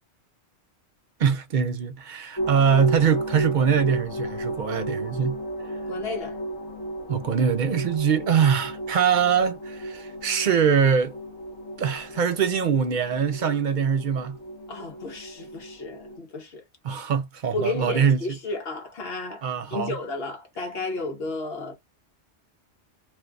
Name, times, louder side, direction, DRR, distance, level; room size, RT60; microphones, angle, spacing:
voice 1, 1.2-5.4 7.1-11.2 11.8-14.4 16.8-18.2 19.4-20.0, right 7 dB, 60° right, 0.5 m, -23 dB
sound 1, 2.4-16.2, right 1 dB, 25° left, 0.9 m, -34 dB
voice 2, 5.9-6.4 14.7-16.6 17.5-21.7, left 3 dB, 65° left, 1.0 m, -32 dB
2.6 x 2.3 x 3.6 m
omnidirectional pair, 1.1 m